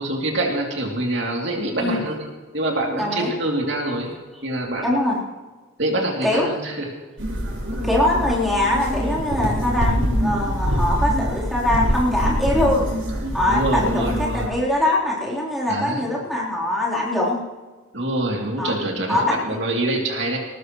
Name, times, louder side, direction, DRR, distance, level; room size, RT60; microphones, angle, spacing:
voice 1, 0.0-2.2 2.5-4.1 4.4-5.0 5.8-6.9 13.5-14.5 15.7-16.0 17.9-20.4, right 1 dB, 55° right, -1 dB, 3.0 m, -25 dB
voice 2, 3.0-3.3 4.8-5.2 6.2-6.5 7.8-12.9 13.3-17.4 18.6-18.8 19.1-19.3, left 1 dB, ahead, -7 dB, 3.9 m, -22 dB
sound 1, 7.2-14.5, equal, 75° right, 6.8 m, -24 dB
21.5 x 19.5 x 3.2 m, 1.3 s
head